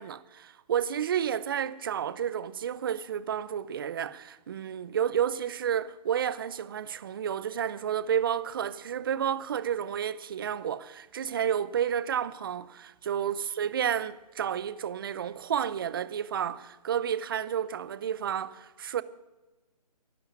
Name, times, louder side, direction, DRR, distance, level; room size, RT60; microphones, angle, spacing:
voice 1, 0.0-19.0, right 9 dB, 35° right, 0.6 m, -31 dB
11.5 x 11.0 x 8.5 m
hypercardioid pair, 160°, 21 cm